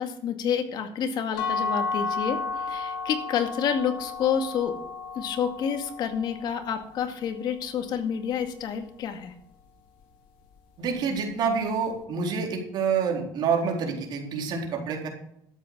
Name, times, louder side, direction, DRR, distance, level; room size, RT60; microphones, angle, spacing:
voice 1, 0.0-4.8 5.2-9.3, left 7 dB, 60° left, 6 dB, 2.2 m, -29 dB
sound 1, 1.4-7.2, left 4 dB, 80° left, 3.1 m, -33 dB
voice 2, 10.8-15.1, right 5 dB, 60° right, 1 dB, 4.1 m, -27 dB
13.0 x 8.4 x 6.2 m, 0.75 s
cardioid pair, 115°, 8 cm